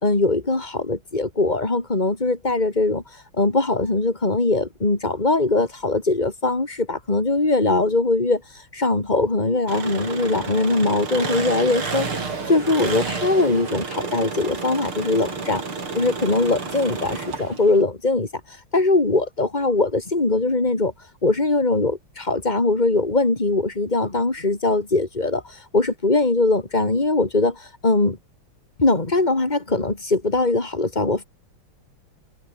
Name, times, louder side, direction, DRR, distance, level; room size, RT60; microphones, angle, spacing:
voice 1, 0.0-3.0 3.4-8.4 8.7-12.1 12.5-15.6 15.9-18.3 18.7-20.9 21.2-25.4 25.7-27.5 27.8-28.2 28.8-31.2, left 2 dB, 20° left, 3.2 m, -21 dB
Engine, 9.7-17.8, right 4 dB, 85° right, 4.7 m, -30 dB
omnidirectional pair, 2.3 m